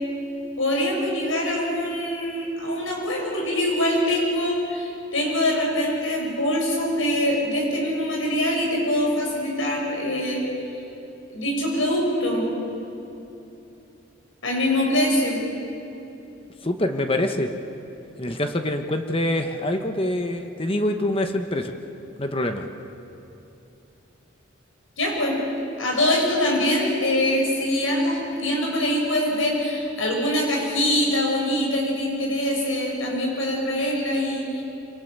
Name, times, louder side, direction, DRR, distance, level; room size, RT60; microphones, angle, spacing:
voice 1, 0.6-10.4 11.3-12.4 14.4-15.4 25.0-25.4 25.8-34.6, left 1 dB, 75° left, -1 dB, 7.3 m, -24 dB
voice 2, 16.6-17.5 18.2-21.8 22.2-22.7, left 1 dB, 25° left, 5 dB, 1.1 m, -25 dB
26.5 x 26.0 x 6.8 m, 2.9 s
head